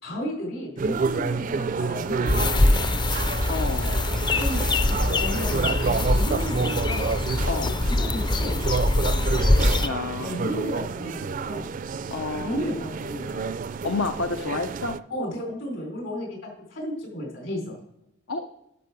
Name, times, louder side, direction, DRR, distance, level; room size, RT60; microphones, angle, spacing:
voice 1, 0.0-3.1 4.3-7.1 7.5-7.7 8.0-8.9 10.2-11.7 12.4-13.4 15.1-17.8, equal, 70° left, 1 dB, 4.4 m, -33 dB
sound 1, 0.8-15.0, right 5 dB, 40° right, 0.4 m, -30 dB
sound 2, 2.3-9.9, left 2 dB, 20° left, 0.4 m, -23 dB
voice 2, 3.5-4.0 7.4-7.7 9.5-10.5 12.1-12.7 13.8-15.0 18.3-18.5, left 3 dB, 85° left, 8 dB, 0.7 m, -30 dB
11.0 x 5.9 x 6.2 m, 0.83 s
head